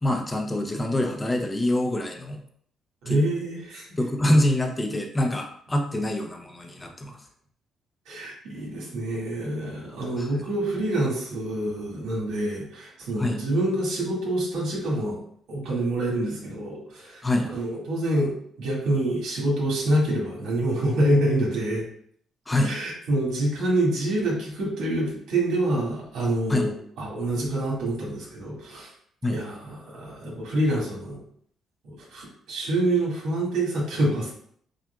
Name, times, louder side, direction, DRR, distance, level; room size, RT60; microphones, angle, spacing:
voice 1, 0.0-2.4 3.1-3.2 4.0-7.2 10.2-10.3 13.2-13.4 17.2-17.5 22.5-22.7 26.5-26.7 29.2-29.4, left 1 dB, 20° left, 3 dB, 0.6 m, -25 dB
voice 2, 3.0-3.9 8.1-15.2 15.5-21.9 22.6-28.9 29.3-31.2 31.8-34.3, right 1 dB, 85° right, -3 dB, 1.8 m, -26 dB
7.3 x 2.5 x 2.3 m, 0.63 s
cardioid pair, 90°, 0 cm